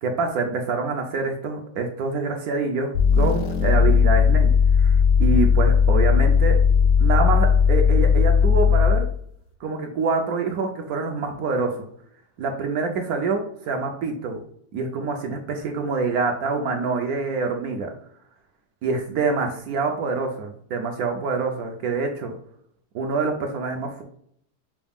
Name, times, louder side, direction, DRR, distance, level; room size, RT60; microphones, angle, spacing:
voice 1, 0.0-4.5 4.8-6.6 7.0-9.1 9.6-11.9 12.4-14.4 14.7-17.9 18.8-22.3 22.9-24.0, right 4 dB, 70° right, 3 dB, 1.0 m, -26 dB
sound 1, 2.9-9.1, left 6 dB, 90° left, 1.3 m, -17 dB
5.8 x 2.3 x 3.5 m, 0.66 s
omnidirectional pair, 1.8 m